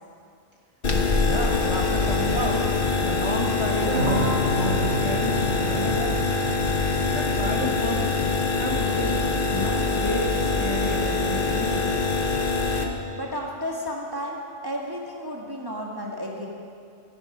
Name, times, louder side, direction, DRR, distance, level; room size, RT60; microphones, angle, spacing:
sound 1, 0.8-12.8, left 3 dB, 45° left, 1.3 m, -24 dB
voice 1, 1.2-2.7 3.0-6.2 7.1-8.1 8.6-9.2 9.5-11.9, left 1 dB, 20° left, -2 dB, 1.4 m, -31 dB
sound 2, 3.8-8.5, equal, 55° right, 2.1 m, -30 dB
voice 2, 13.1-16.5, equal, 15° right, -2 dB, 1.5 m, -32 dB
15.0 x 11.0 x 6.0 m, 2.4 s
omnidirectional pair, 1.4 m